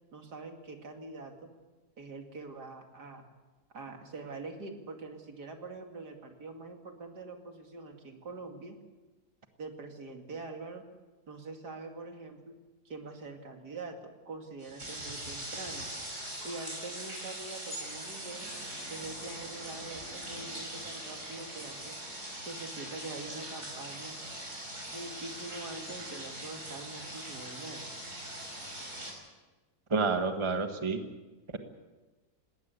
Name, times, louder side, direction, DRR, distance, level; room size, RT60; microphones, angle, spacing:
voice 1, 0.1-1.5 2.0-3.3 3.7-8.8 9.6-10.8 11.3-12.6 12.8-15.9 16.4-18.5 18.9-21.9 22.4-24.2 24.9-27.9, right 3 dB, 75° right, 4 dB, 2.9 m, -44 dB
sound 1, 14.6-29.1, right 1 dB, 45° right, 6.0 m, -41 dB
voice 2, 29.9-31.0, right 4 dB, 20° right, 6 dB, 1.4 m, -29 dB
19.5 x 18.5 x 8.4 m, 1.2 s
omnidirectional pair, 1.8 m